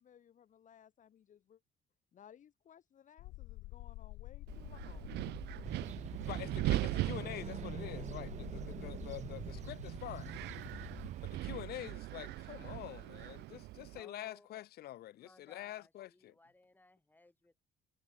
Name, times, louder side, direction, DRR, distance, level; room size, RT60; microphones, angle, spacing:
voice 1, 0.0-1.6 2.1-5.9, left 9 dB, 50° left, 2.8 m, -61 dB
sound 1, 3.2-11.1, left 20 dB, 90° left, 2.4 m, -49 dB
Wind, 4.5-14.0, right 18 dB, 80° right, 1.2 m, -40 dB
sound 2, 5.6-11.5, right 9 dB, 45° right, 1.1 m, -45 dB
voice 2, 6.2-10.3 11.2-16.3, left 14 dB, 70° left, 2.2 m, -46 dB
voice 3, 13.9-14.6 15.2-17.6, left 2 dB, 10° left, 6.3 m, -62 dB
cardioid pair, 110°, 17 cm